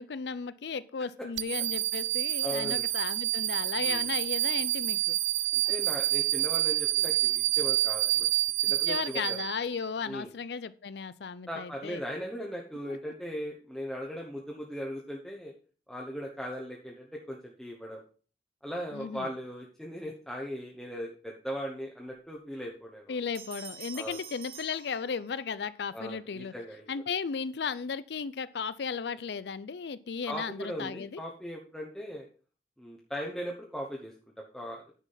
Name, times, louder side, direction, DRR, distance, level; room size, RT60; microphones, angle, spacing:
voice 1, 0.0-5.2 8.9-12.0 18.9-19.3 23.1-26.5 26.9-31.2, left 5 dB, 65° left, 16 dB, 0.5 m, -35 dB
sound 1, 1.4-9.8, right 15 dB, 75° right, 0.4 m, -28 dB
voice 2, 2.4-2.8 3.8-4.1 5.5-8.3 8.6-9.4 10.0-10.3 11.5-15.5 15.9-18.0 18.6-23.1 23.9-24.2 25.9-26.9 30.3-32.3 32.8-34.8, equal, ahead, -2 dB, 1.1 m, -38 dB
Bell, 23.3-25.6, right 7 dB, 55° right, 3.2 m, -46 dB
9.9 x 5.0 x 5.7 m, 0.39 s
head